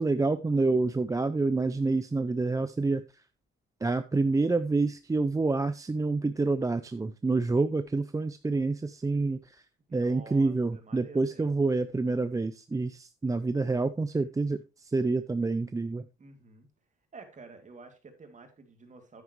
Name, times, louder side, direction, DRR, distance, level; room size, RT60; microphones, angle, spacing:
voice 1, 0.0-3.0 3.8-9.6 9.9-16.1, right 3 dB, 15° right, 11 dB, 0.5 m, -27 dB
voice 2, 9.9-11.8 16.2-16.7 17.1-19.2, right 4 dB, 40° right, 5 dB, 2.6 m, -50 dB
9.5 x 9.2 x 3.1 m, 0.27 s
cardioid pair, 90°, 20 cm